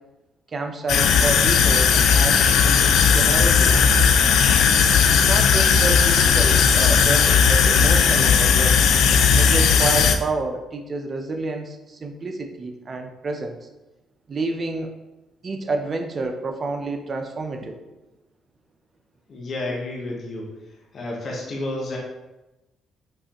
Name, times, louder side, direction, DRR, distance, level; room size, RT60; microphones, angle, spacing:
voice 1, 0.5-3.8 4.9-8.8 9.3-13.6 14.3-14.9 15.4-17.8, right 3 dB, 40° right, 5 dB, 0.6 m, -29 dB
sound 1, 0.9-10.2, left 6 dB, 80° left, 0.4 m, -16 dB
voice 2, 19.3-20.5 20.9-22.0, left 2 dB, 50° left, -2 dB, 1.0 m, -30 dB
5.4 x 3.3 x 2.9 m, 1.0 s
cardioid pair, 90°, 0 cm